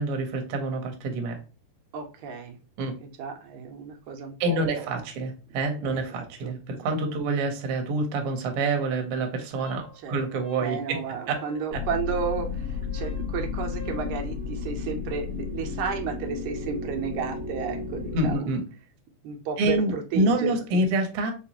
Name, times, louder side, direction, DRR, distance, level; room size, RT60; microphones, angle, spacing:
voice 1, 0.0-1.4 2.8-2.9 4.4-11.4 11.7-11.8 18.1-18.6 19.6-21.3, right 2 dB, 70° right, 4 dB, 1.5 m, -27 dB
voice 2, 1.9-2.6 3.0-5.0 5.8-6.6 10.0-18.5 19.2-20.9, right 6 dB, 85° right, 4 dB, 2.0 m, -33 dB
Wind instrument woodwind instrument, 9.6-14.2, left 1 dB, 75° left, 1.7 m, -49 dB
sound 1, 11.7-18.4, left 5 dB, 50° left, 1.6 m, -33 dB
5.3 x 2.2 x 2.8 m, 0.32 s
omnidirectional pair, 3.3 m